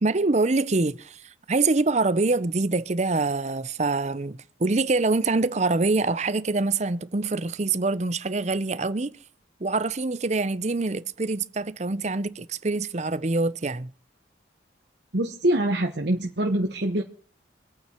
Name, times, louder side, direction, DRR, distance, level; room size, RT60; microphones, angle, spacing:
voice 1, 0.0-9.2 9.6-13.9, right 3 dB, 35° right, 0.7 m, -25 dB
voice 2, 15.1-17.0, right 1 dB, 60° right, 1.2 m, -24 dB
25.0 x 8.9 x 4.5 m
head